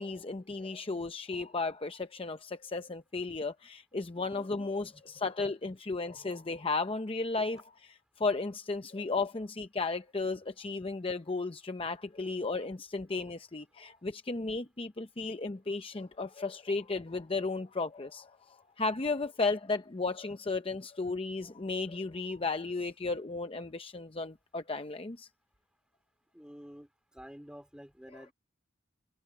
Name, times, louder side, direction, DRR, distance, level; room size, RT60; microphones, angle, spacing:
voice 1, 0.0-25.3 28.1-28.2, left 3 dB, 30° left, 0.7 m, -34 dB
voice 2, 6.1-6.5 26.3-26.9 27.1-28.3, equal, 5° right, 2.9 m, -50 dB
head